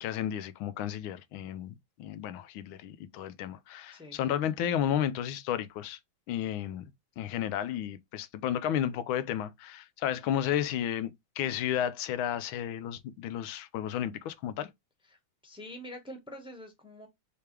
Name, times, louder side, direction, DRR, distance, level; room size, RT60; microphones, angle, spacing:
voice 1, 0.0-6.0 6.3-6.9 7.2-14.7, left 10 dB, 85° left, 1.4 m, -32 dB
voice 2, 15.4-17.1, equal, 5° right, 0.9 m, -45 dB
4.7 x 3.4 x 3.1 m
omnidirectional pair, 2.2 m